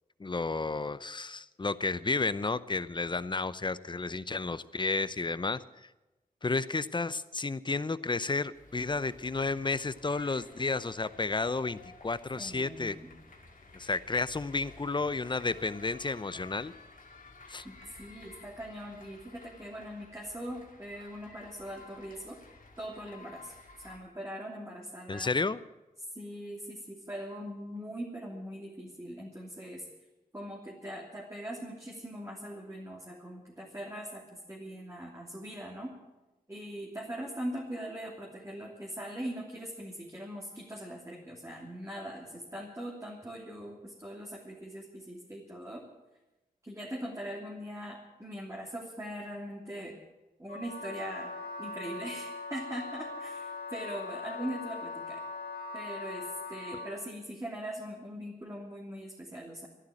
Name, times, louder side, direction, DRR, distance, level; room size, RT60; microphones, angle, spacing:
voice 1, 0.2-5.9 6.4-13.0 13.7-16.7 17.5-17.7 25.1-25.6, left 3 dB, 30° left, 15 dB, 0.7 m, -32 dB
sound 1, 8.5-24.0, left 3 dB, 55° left, 2.3 m, -54 dB
voice 2, 12.4-13.1 17.6-22.4 22.8-23.5 23.8-25.3 26.1-29.8 30.3-35.9 36.5-45.8 46.6-49.9 50.4-51.3 51.6-55.2 55.7-59.7, equal, 20° right, -3 dB, 3.0 m, -41 dB
Wind instrument woodwind instrument, 50.5-57.0, left 3 dB, 90° left, 2.7 m, -41 dB
13.0 x 11.5 x 9.0 m, 1.0 s
cardioid pair, 55°, 16 cm